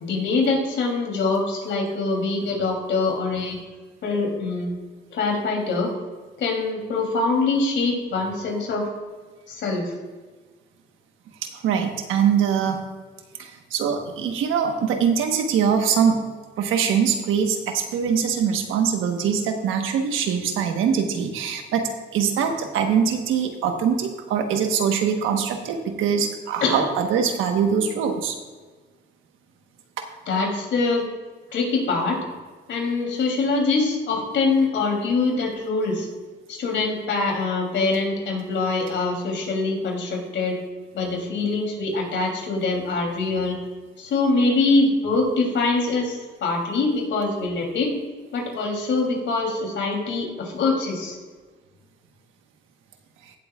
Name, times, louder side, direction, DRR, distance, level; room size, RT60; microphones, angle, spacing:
voice 1, 0.0-3.5 4.0-4.7 5.1-5.9 6.4-8.8 9.5-9.8 26.6-26.8 30.3-31.0 31.5-32.2 32.7-36.1 36.5-40.6 40.9-43.6 44.0-47.9 48.3-51.2, left 3 dB, 70° left, 0 dB, 3.2 m, -24 dB
voice 2, 11.5-12.8 13.4-16.2 16.6-28.3, right 7 dB, 90° right, 5 dB, 1.3 m, -23 dB
16.5 x 7.8 x 2.4 m, 1.4 s
cardioid pair, 90°, 20 cm